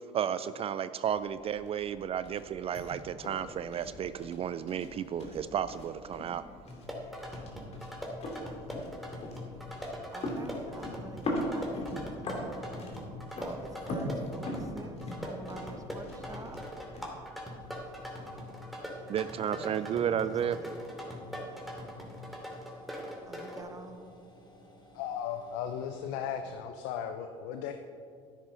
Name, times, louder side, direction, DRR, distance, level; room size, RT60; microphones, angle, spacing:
voice 1, 0.1-6.4 19.1-20.6, right 9 dB, 40° right, 13 dB, 0.3 m, -33 dB
sound 1, 1.1-18.1, left 1 dB, 45° left, 2.4 m, -41 dB
sound 2, 6.7-23.6, left 1 dB, ahead, 2.5 m, -42 dB
voice 2, 10.1-12.6 13.4-16.6 19.5-20.7 23.2-24.0, right 3 dB, 20° right, 6 dB, 1.1 m, -48 dB
sound 3, 17.3-26.4, equal, 30° left, 2.4 m, -57 dB
voice 3, 24.9-27.7, left 8 dB, 75° left, 7 dB, 0.6 m, -36 dB
10.0 x 9.9 x 3.9 m, 2.3 s
hypercardioid pair, 70°, 15 cm